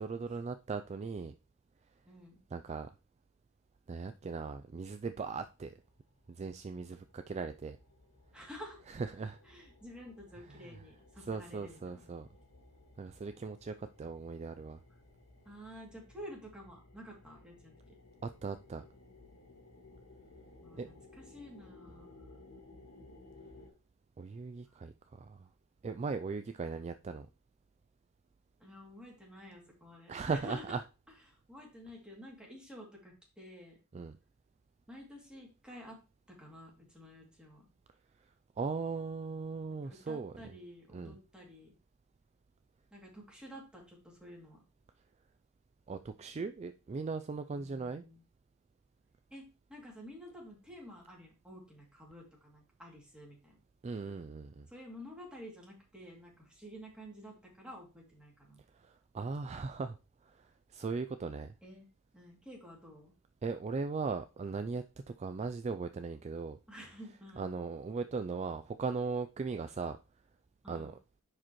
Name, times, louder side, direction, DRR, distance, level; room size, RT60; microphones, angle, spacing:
voice 1, 0.0-1.3 2.5-2.9 3.9-5.7 6.3-7.8 8.9-9.4 10.6-10.7 11.3-12.3 13.0-14.8 18.2-18.8 20.8-20.9 24.2-25.4 25.8-27.3 30.1-30.8 33.9-34.2 38.6-40.3 40.9-41.2 45.9-48.0 53.8-54.7 59.1-60.0 60.7-61.5 63.4-64.8 65.2-66.6 67.4-70.0 70.7-71.0, right 4 dB, 30° right, 0.3 m, -38 dB
voice 2, 2.1-2.4 8.3-8.8 9.4-12.1 15.4-17.7 20.6-22.2 24.7-24.8 28.6-30.8 31.3-33.8 34.9-36.0 36.4-37.7 39.7-41.7 42.9-44.6 47.5-48.2 49.3-53.6 54.7-58.6 61.6-61.9 62.1-63.1 66.7-67.5 70.6-71.0, equal, 5° right, 2.5 m, -51 dB
sound 1, 5.5-23.7, left 2 dB, 85° left, 1.7 m, -59 dB
9.9 x 4.9 x 3.0 m
head